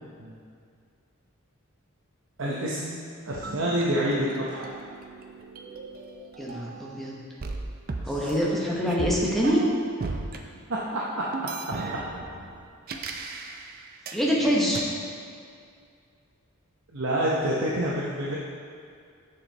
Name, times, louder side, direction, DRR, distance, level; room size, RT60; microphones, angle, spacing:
voice 1, 2.4-3.0 3.3-4.7 8.0-8.3 10.9-11.2 16.9-18.4, right 1 dB, 60° right, -6 dB, 0.9 m, -27 dB
sound 1, 3.4-7.0 7.4-10.4 11.3-14.2 14.7-14.8, right 3 dB, 45° right, 0.5 m, -37 dB
voice 2, 6.4-7.1 8.0-9.6 14.1-14.9, equal, ahead, -5 dB, 1.1 m, -25 dB
7.1 x 6.8 x 4.0 m, 2.3 s
head